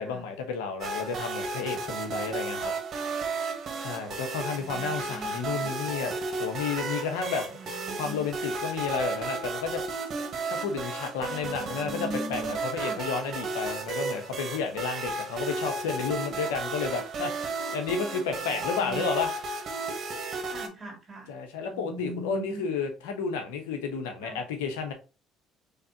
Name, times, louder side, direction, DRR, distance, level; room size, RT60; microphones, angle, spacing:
voice 1, 0.0-2.7 3.8-7.5 7.9-9.8 10.5-19.3 21.3-24.9, left 5 dB, 85° left, 0.8 m, -32 dB
sound 1, 0.8-20.7, right 3 dB, 50° right, 1.2 m, -33 dB
voice 2, 4.6-5.7 7.6-8.3 11.4-13.0 18.1-19.1 20.5-21.3 21.7-22.6 24.2-24.4, right 2 dB, 30° right, 2.1 m, -41 dB
4.1 x 3.3 x 2.7 m
supercardioid pair, 75°, 0 cm